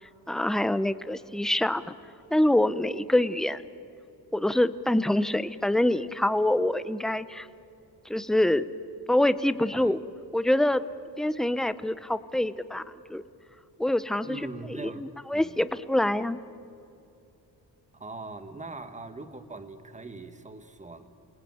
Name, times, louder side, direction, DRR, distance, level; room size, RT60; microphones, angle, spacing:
voice 1, 0.3-1.8 2.3-3.6 4.3-7.5 8.1-8.7 9.1-10.0 10.3-10.8 11.2-12.8 13.1-13.2 13.8-14.4 14.8-16.4, left 1 dB, ahead, 14 dB, 0.6 m, -25 dB
voice 2, 14.2-15.6 17.9-21.3, right 3 dB, 15° right, 8 dB, 1.5 m, -42 dB
28.5 x 20.0 x 9.3 m, 2.7 s
wide cardioid pair, 145°, 41 cm